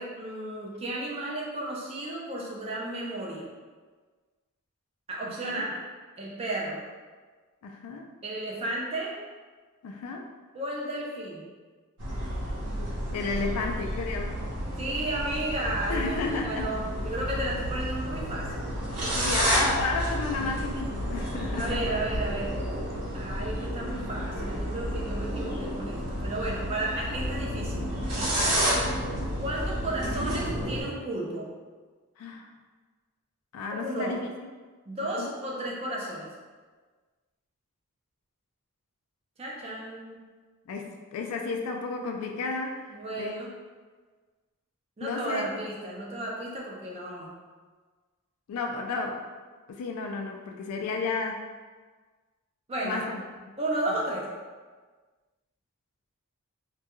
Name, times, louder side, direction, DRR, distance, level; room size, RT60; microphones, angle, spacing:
voice 1, 0.0-3.5 5.1-5.7 6.2-6.8 8.2-9.1 10.5-11.4 14.8-19.4 21.6-22.6 23.1-27.8 28.2-28.5 29.4-31.5 33.7-34.2 34.9-36.3 39.4-40.2 42.9-43.5 45.0-47.3 52.7-53.0 53.6-54.2, right 1 dB, 25° right, -4 dB, 0.4 m, -33 dB
voice 2, 7.6-8.1 9.8-10.3 13.1-14.4 15.9-16.7 19.1-21.8 28.3-28.6 32.2-32.5 33.5-34.3 35.2-35.3 40.7-43.4 45.0-45.5 48.5-49.2 49.7-51.4 52.8-53.2 53.9-54.0, left 4 dB, 75° left, 7 dB, 0.3 m, -32 dB
sound 1, 12.0-30.8, equal, 90° right, 0.8 m, -31 dB
2.2 x 2.2 x 2.9 m, 1.4 s
head